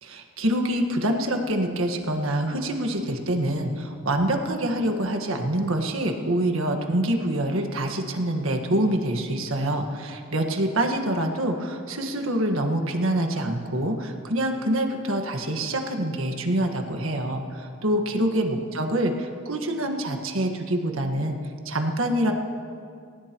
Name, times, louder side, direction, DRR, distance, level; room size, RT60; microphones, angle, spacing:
voice 1, 0.0-21.4 21.6-22.3, right 1 dB, 80° right, 4 dB, 1.6 m, -26 dB
28.5 x 16.5 x 3.1 m, 2.3 s
head